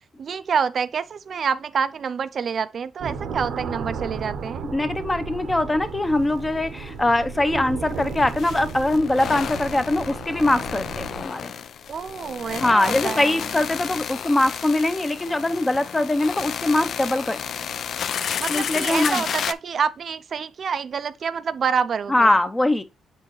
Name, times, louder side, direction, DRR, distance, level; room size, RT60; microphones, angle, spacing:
voice 1, 0.2-4.7 11.9-13.4 18.4-22.3, right 6 dB, 50° right, 0.4 m, -27 dB
sound 1, 3.0-11.2, right 6 dB, 75° right, 0.8 m, -34 dB
voice 2, 4.6-11.5 12.6-17.4 18.5-19.2 22.1-22.8, left 2 dB, 15° left, 0.6 m, -22 dB
sound 2, 5.8-6.0 6.2-6.3 7.9-19.5, left 8 dB, 60° left, 0.4 m, -31 dB
7.0 x 4.5 x 3.0 m
cardioid pair, 90°, 0 cm